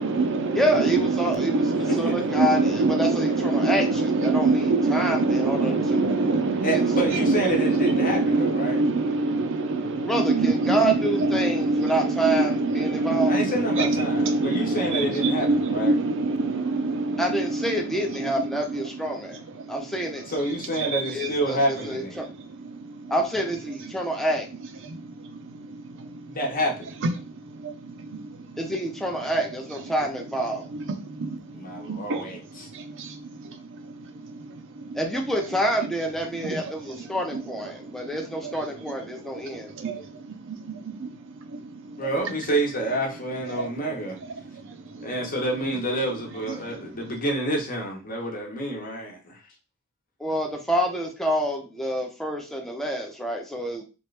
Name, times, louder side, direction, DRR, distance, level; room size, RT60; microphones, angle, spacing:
voice 1, 0.0-17.8 18.2-18.3 19.1-19.2 19.6-19.7 20.8-21.0 22.2-22.3 22.6-23.1 24.8-26.4 27.5-28.6 30.7-32.4 32.7-35.0 36.4-36.6 37.3-37.4 37.9-38.0 38.4-38.5 38.9-39.0 39.7-41.2 41.5-42.0 43.5-43.7 44.5-45.1 46.5-46.7, right 3 dB, 60° right, 0.5 m, -25 dB
voice 2, 0.5-6.2 6.7-6.8 7.1-7.2 10.0-13.3 17.2-19.4 19.7-20.3 21.1-22.3 23.1-24.5 28.6-30.6 34.9-39.7 50.2-53.8, right 1 dB, ahead, 0.6 m, -27 dB
voice 3, 1.9-2.2 6.6-8.8 13.3-16.0 20.3-22.3 26.3-26.9 31.5-32.7 42.0-44.2 45.0-49.4, right 1 dB, 40° left, 0.9 m, -28 dB
3.1 x 2.5 x 3.2 m
head